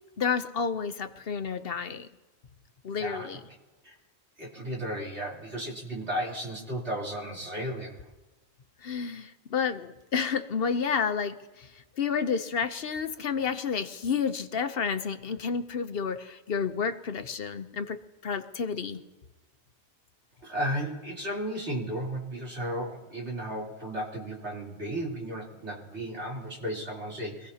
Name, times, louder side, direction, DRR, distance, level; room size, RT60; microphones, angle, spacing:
voice 1, 0.2-2.1 2.8-3.4 8.8-11.7 12.0-18.0 18.2-19.0, left 6 dB, 60° left, 9 dB, 0.9 m, -30 dB
voice 2, 3.0-3.3 3.8-3.9 4.4-8.1 20.4-27.5, right 1 dB, 80° right, -4 dB, 3.8 m, -34 dB
25.0 x 16.5 x 2.8 m, 1.2 s
omnidirectional pair, 1.1 m